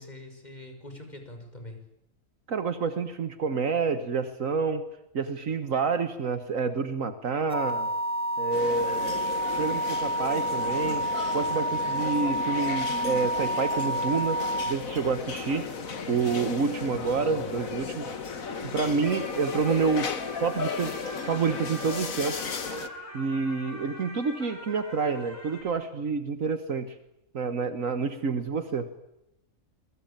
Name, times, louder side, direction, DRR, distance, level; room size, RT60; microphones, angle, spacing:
voice 1, 0.0-1.8 16.3-16.6 17.0-17.5, left 1 dB, 30° left, 5 dB, 6.3 m, -43 dB
voice 2, 2.5-4.8 5.1-7.9 8.4-9.3 9.6-11.1 11.3-15.7 16.1-18.1 18.6-20.1 20.4-20.9 21.3-22.5 23.1-27.0 27.3-29.1, right 5 dB, 75° right, 10 dB, 1.8 m, -28 dB
sound 1, 7.5-14.7, right 1 dB, 10° right, 1.7 m, -29 dB
sound 2, 8.5-22.9, left 5 dB, 80° left, 2.1 m, -35 dB
sound 3, 16.7-25.6, left 1 dB, 10° left, 7.9 m, -45 dB
27.0 x 21.5 x 9.0 m, 0.86 s
omnidirectional pair, 1.4 m